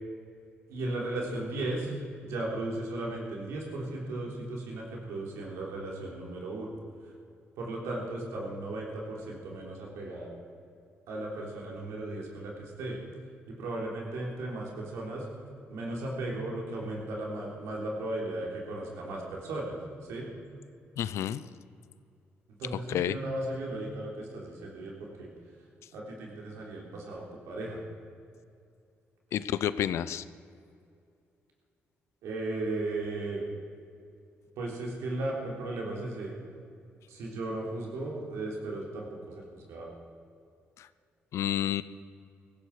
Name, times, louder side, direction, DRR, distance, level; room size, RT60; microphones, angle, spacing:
voice 1, 0.7-1.9 2.2-6.7 7.6-10.3 11.1-13.0 13.5-15.3 15.7-19.8 20.1-20.3 22.6-25.3 25.9-27.8 32.2-33.5 34.6-36.3 37.1-39.9, right 2 dB, 90° right, -2 dB, 3.6 m, -36 dB
voice 2, 21.0-21.4 22.9-23.2 29.3-30.2 40.8-40.9 41.3-41.8, left 11 dB, 80° left, 15 dB, 0.6 m, -29 dB
17.5 x 15.0 x 4.9 m, 2.4 s
cardioid pair, 70°, 5 cm